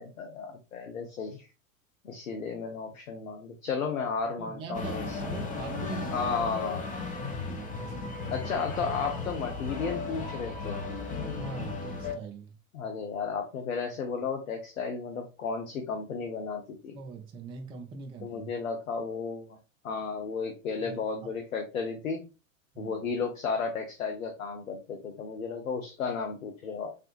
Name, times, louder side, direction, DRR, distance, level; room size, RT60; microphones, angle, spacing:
voice 1, 0.0-1.5 2.0-5.2 6.1-6.8 8.3-10.8 12.7-17.0 18.2-19.6 19.8-22.2 22.8-26.9, left 5 dB, 80° left, 0.7 m, -33 dB
voice 2, 4.4-6.2 7.2-8.5 11.3-12.6 16.9-18.5 20.8-21.3 22.7-23.1, right 5 dB, 15° right, 0.4 m, -43 dB
sound 1, 4.7-12.1, left 4 dB, 20° left, 0.7 m, -35 dB
3.3 x 2.4 x 3.0 m
figure-of-eight pair, 90°, 40 cm